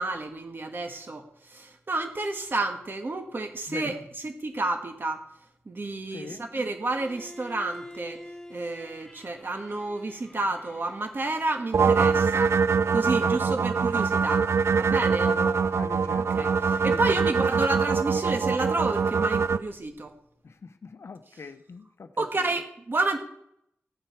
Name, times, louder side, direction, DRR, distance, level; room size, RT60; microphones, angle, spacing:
voice 1, 0.0-3.9 4.2-5.2 5.6-8.2 8.5-12.6 12.9-15.3 16.1-20.1 22.2-23.2, right 2 dB, 50° right, 5 dB, 1.7 m, -30 dB
voice 2, 3.7-4.0 6.1-6.5 13.1-13.8 15.2-17.5 20.4-22.5, left 4 dB, 75° left, 10 dB, 0.8 m, -42 dB
Bowed string instrument, 6.9-11.9, left 1 dB, 15° left, 1.3 m, -47 dB
sound 1, 11.7-19.6, right 5 dB, 75° right, 0.4 m, -23 dB
15.0 x 9.0 x 4.6 m, 0.74 s
wide cardioid pair, 90°, 5 cm